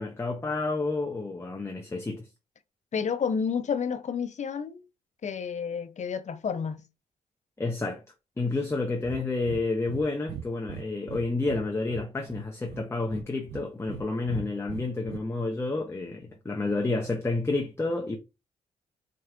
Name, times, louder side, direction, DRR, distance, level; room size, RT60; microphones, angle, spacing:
voice 1, 0.0-2.3 7.6-8.0 8.4-18.2, left 3 dB, 15° left, 0.7 m, -30 dB
voice 2, 2.9-4.8 5.2-6.8, left 6 dB, 50° left, 0.6 m, -30 dB
Breathing, 9.0-9.2 9.5-9.6 9.9-10.0 10.3-11.6 11.9-12.8 13.1-14.0 14.3-15.2, right 8 dB, 80° right, 0.4 m, -39 dB
4.4 x 2.6 x 2.4 m
cardioid pair, 65°, 15 cm